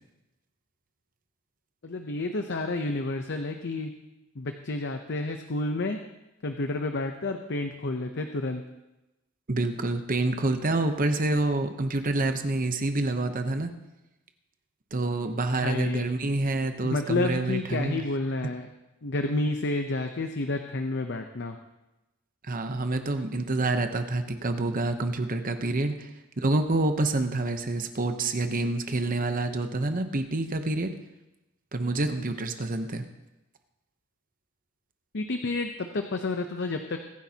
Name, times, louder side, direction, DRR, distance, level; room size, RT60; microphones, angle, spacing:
voice 1, 1.8-3.9 4.4-6.0 6.4-8.6 15.5-16.1 16.8-18.7 19.0-21.6 35.1-37.0, left 2 dB, 55° left, 6 dB, 0.7 m, -30 dB
voice 2, 9.5-13.7 14.9-18.0 22.4-26.1 26.4-30.9 31.7-33.0, right 2 dB, 40° right, 7 dB, 0.8 m, -27 dB
23.0 x 10.5 x 2.9 m, 1.0 s
head